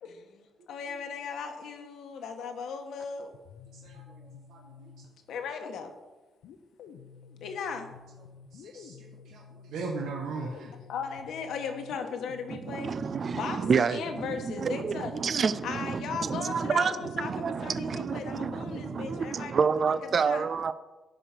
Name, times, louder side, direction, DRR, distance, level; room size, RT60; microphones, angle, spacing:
voice 1, 0.0-3.3 5.3-5.9 7.4-7.9 10.9-12.9 13.3-15.1 15.6-20.0 20.2-20.4, left 6 dB, 70° left, 1.2 m, -37 dB
sound 1, 3.3-5.5 6.4-19.4, left 6 dB, 85° left, 0.9 m, -50 dB
voice 2, 3.7-4.9 8.5-10.7, right 3 dB, 85° right, 1.4 m, -39 dB
voice 3, 12.5-20.7, right 5 dB, 35° right, 0.3 m, -29 dB
11.0 x 5.0 x 5.8 m
cardioid pair, 145°, 0 cm